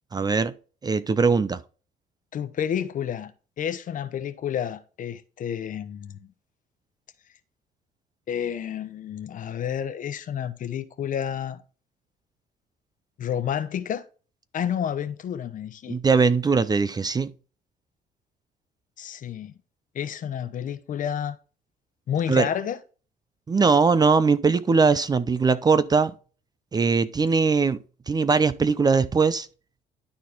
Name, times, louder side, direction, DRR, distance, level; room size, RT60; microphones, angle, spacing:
voice 1, 0.1-0.5 0.8-1.6 15.9-17.3 22.3-22.5 23.5-26.1 26.7-27.8 28.1-29.5, right 4 dB, 25° right, 0.6 m, -21 dB
voice 2, 2.3-3.3 3.6-6.2 8.3-11.6 13.2-14.0 14.5-16.0 19.0-19.5 19.9-21.4 22.1-22.8, left 9 dB, 50° left, 1.0 m, -30 dB
12.0 x 4.3 x 3.6 m
cardioid pair, 110°, 17 cm